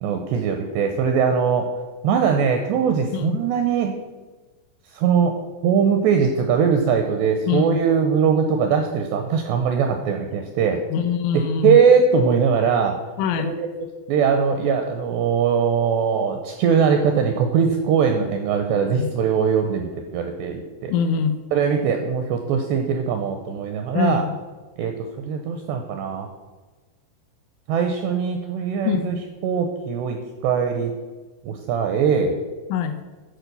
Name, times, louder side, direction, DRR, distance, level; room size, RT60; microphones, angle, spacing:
voice 1, 0.0-1.7 2.0-3.9 4.9-5.3 5.6-10.8 11.3-13.0 13.4-13.7 14.1-20.9 21.5-24.3 24.8-24.9 25.3-26.3 27.7-29.2 29.4-30.9 31.4-32.4, right 6 dB, 85° right, 5 dB, 2.4 m, -21 dB
voice 2, 7.5-7.8 10.9-11.8 13.2-13.5 18.9-19.1 20.9-21.4 23.9-24.4 28.9-29.1 32.7-33.0, left 7 dB, 80° left, 8 dB, 3.0 m, -23 dB
12.0 x 4.6 x 6.7 m, 1.3 s
omnidirectional pair, 5.7 m